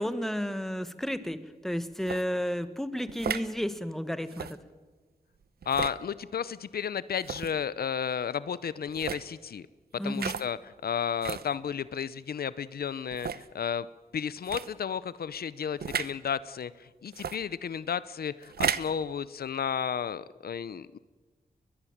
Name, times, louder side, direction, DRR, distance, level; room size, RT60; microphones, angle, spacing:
voice 1, 0.0-4.6 9.9-10.4, equal, ahead, 11 dB, 1.5 m, -32 dB
sound 1, 2.0-2.2 3.1-3.5 4.3-4.6 5.6-6.0 7.2-7.5 8.9-9.3 10.1-10.5 11.2-11.5 12.2-12.3 13.1-13.5 14.4-14.7 15.8-16.1 17.1-17.4 18.4-18.9, right 7 dB, 85° right, 0.8 m, -33 dB
voice 2, 5.7-9.6 10.0-13.9 14.1-21.0, left 7 dB, 80° left, 17 dB, 0.7 m, -33 dB
21.5 x 21.0 x 7.3 m, 1.3 s
wide cardioid pair, 80°, 16 cm